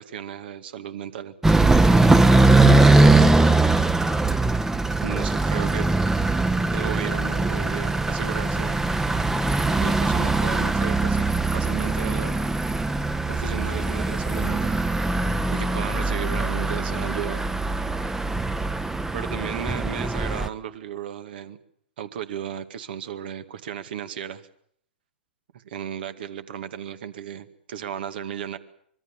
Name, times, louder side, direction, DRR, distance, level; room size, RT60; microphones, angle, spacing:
voice 1, 0.0-1.3 2.6-3.3 5.0-5.9 6.7-8.8 9.7-12.4 13.3-15.0 15.5-17.4 19.1-21.6 22.0-24.5 25.5-28.6, right 9 dB, 60° right, 10 dB, 2.1 m, -34 dB
sound 1, 1.4-20.5, right 2 dB, 5° right, 1.0 m, -21 dB
24.5 x 22.5 x 7.4 m, 0.65 s
hypercardioid pair, 110°, 6 cm